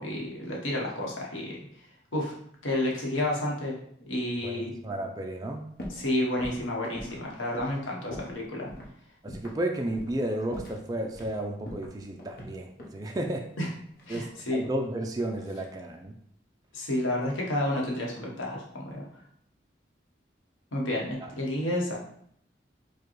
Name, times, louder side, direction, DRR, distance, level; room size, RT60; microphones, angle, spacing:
voice 1, 0.0-1.6 2.1-2.3 2.6-3.7 4.1-4.7 5.9-8.7 13.6-13.7 14.1-14.6 16.7-19.0 20.7-22.0, left 1 dB, 85° left, -2 dB, 1.0 m, -30 dB
voice 2, 4.4-5.7 9.2-13.5 14.1-16.1 21.2-21.3, right 1 dB, 20° right, 2 dB, 0.3 m, -33 dB
sound 1, 5.8-6.1 6.4-8.4 8.7-8.9 9.3-9.6 9.9-10.2 10.5-11.4 11.7-13.0 14.0-14.9 15.2-15.6, equal, 50° left, 0.8 m, -42 dB
4.7 x 2.2 x 3.0 m, 0.68 s
head